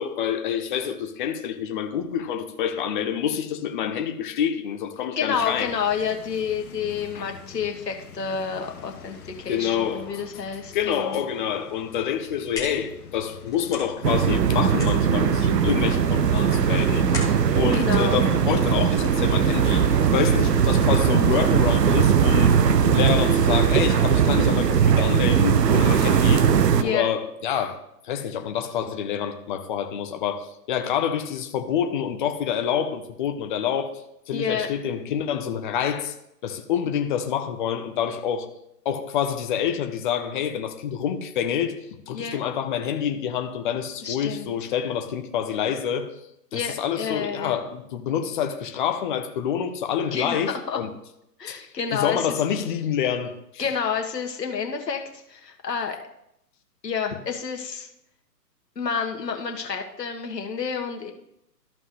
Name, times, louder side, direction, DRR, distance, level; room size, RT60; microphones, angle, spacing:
voice 1, 0.0-5.7 7.1-7.3 9.5-10.3 10.7-26.5 26.8-27.8 28.0-33.9 34.3-36.1 36.4-38.5 38.8-46.1 46.5-50.9 51.5-51.6 51.9-53.6, left 8 dB, 30° left, 0.8 m, -27 dB
voice 2, 5.2-11.2 17.7-18.2 26.7-27.1 34.3-34.7 42.1-42.4 44.0-44.5 46.5-47.6 50.1-50.8 51.4-52.2 53.6-55.0 55.3-56.0 56.8-57.9 58.7-61.1, left 6 dB, 80° left, 1.5 m, -29 dB
sound 1, 5.3-21.9, left 6 dB, 60° left, 1.4 m, -42 dB
sound 2, 12.2-19.0, left 4 dB, 5° left, 1.4 m, -40 dB
sound 3, 14.0-26.8, right 7 dB, 75° right, 0.9 m, -19 dB
13.5 x 5.5 x 3.2 m
hypercardioid pair, 135°, 49 cm